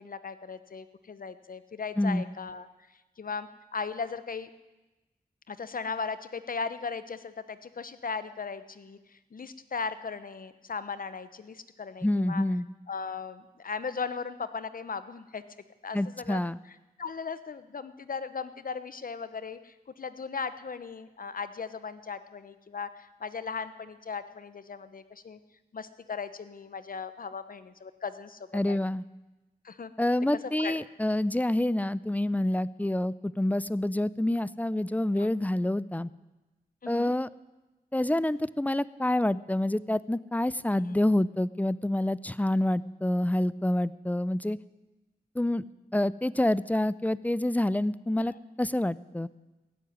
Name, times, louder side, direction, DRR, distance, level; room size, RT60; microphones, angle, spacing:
voice 1, 0.0-2.7 3.2-4.5 5.5-12.4 12.9-15.4 15.8-16.4 17.0-25.4 25.7-28.8 29.6-29.9 30.6-30.8 31.1-31.2 35.2-35.3 36.8-37.1 40.7-41.0 48.2-48.4, left 5 dB, 60° left, 13 dB, 0.9 m, -37 dB
voice 2, 12.0-12.7 15.9-16.6 28.5-29.0 30.0-36.1 36.9-37.3 37.9-44.6 45.3-45.6 45.9-49.3, left 1 dB, 10° left, 19 dB, 0.5 m, -27 dB
16.5 x 7.8 x 9.6 m, 1.1 s
cardioid pair, 55°, 16 cm